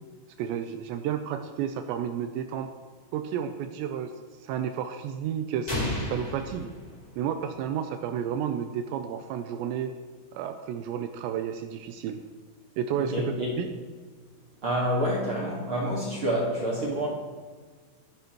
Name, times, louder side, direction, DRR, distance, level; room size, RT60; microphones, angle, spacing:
voice 1, 0.4-2.7 3.1-4.1 4.4-6.7 7.2-9.9 10.3-12.2 12.8-13.7, right 8 dB, 85° right, 7 dB, 2.5 m, -31 dB
sound 1, 5.7-7.6, left 1 dB, 20° left, 1.1 m, -33 dB
voice 2, 13.0-13.6 14.6-17.1, equal, 65° right, -3 dB, 1.3 m, -28 dB
24.5 x 10.5 x 3.1 m, 1.5 s
omnidirectional pair, 5.7 m